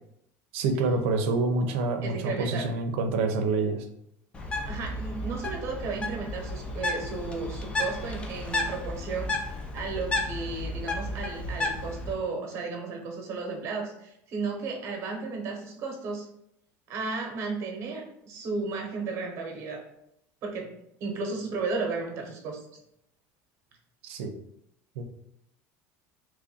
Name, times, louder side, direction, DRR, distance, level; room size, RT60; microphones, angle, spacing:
voice 1, 0.5-3.9 24.0-24.3 25.0-25.1, right 3 dB, 85° right, 6 dB, 0.5 m, -27 dB
voice 2, 2.0-2.7 4.7-16.3 16.9-19.8 20.4-20.7 21.0-22.6, right 4 dB, 45° right, 1 dB, 0.9 m, -34 dB
Bird, 4.3-12.1, left 2 dB, 15° left, 0.4 m, -33 dB
3.0 x 2.5 x 3.9 m, 0.78 s
cardioid pair, 150°, 7 cm